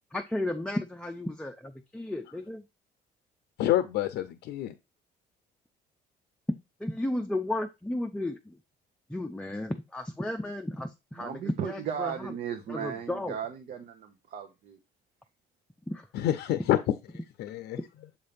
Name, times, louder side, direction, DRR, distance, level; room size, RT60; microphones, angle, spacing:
voice 1, 0.1-2.6 6.8-8.6 9.1-12.3 12.7-13.4 15.9-16.0, left 1 dB, 5° left, 4 dB, 0.5 m, -34 dB
voice 2, 3.6-4.7 16.1-16.8 17.4-17.8, left 13 dB, 80° left, 9 dB, 0.6 m, -27 dB
voice 3, 11.2-14.8, right 8 dB, 55° right, 5 dB, 0.9 m, -36 dB
7.3 x 2.8 x 5.1 m, 0.24 s
cardioid pair, 110°, 17 cm